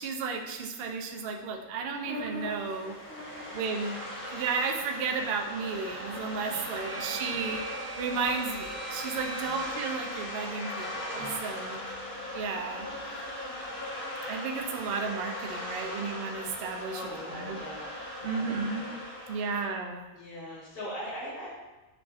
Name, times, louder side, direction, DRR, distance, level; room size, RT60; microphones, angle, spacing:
voice 1, 0.0-3.0 3.5-7.7 8.0-11.8 12.3-12.9 14.3-17.0 17.3-17.6 18.2-18.9 19.3-20.1, right 5 dB, 65° right, 3 dB, 0.6 m, -33 dB
sound 1, 1.7-19.7, left 1 dB, 10° left, 0.7 m, -39 dB
sound 2, 6.4-12.6, right 4 dB, 85° right, 1.3 m, -45 dB
voice 2, 16.9-17.9 18.2-19.0 20.1-21.5, equal, 45° left, -10 dB, 1.7 m, -41 dB
6.7 x 2.5 x 2.4 m, 1.1 s
omnidirectional pair, 1.4 m